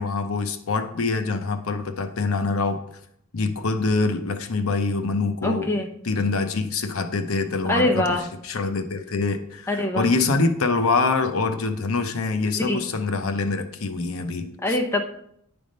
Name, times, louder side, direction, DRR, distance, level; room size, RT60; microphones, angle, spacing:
voice 1, 0.0-2.8 3.3-5.7 6.0-14.8, left 3 dB, 75° left, 7 dB, 0.7 m, -25 dB
voice 2, 5.4-5.9 7.7-8.2 9.7-10.1 12.6-12.8 14.6-15.0, left 1 dB, 10° left, 2 dB, 0.7 m, -23 dB
10.0 x 3.5 x 5.2 m, 0.72 s
head